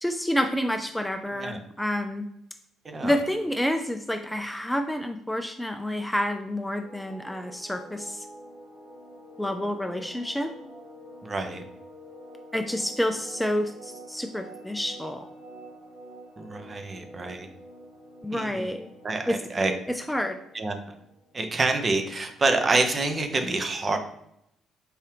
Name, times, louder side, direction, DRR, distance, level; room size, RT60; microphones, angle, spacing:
voice 1, 0.0-2.3 3.0-8.2 9.4-10.5 12.5-15.2 18.2-18.9 19.3-19.4 19.9-20.4, equal, 5° left, 5 dB, 0.4 m, -28 dB
voice 2, 2.8-3.2 11.2-11.6 16.4-17.5 18.3-18.7 19.0-19.7 20.5-20.8 21.3-24.0, right 3 dB, 35° right, 6 dB, 0.7 m, -27 dB
sound 1, 6.8-22.0, right 1 dB, 80° right, 1.3 m, -47 dB
4.7 x 2.8 x 3.2 m, 0.77 s
figure-of-eight pair, 45°, 0 cm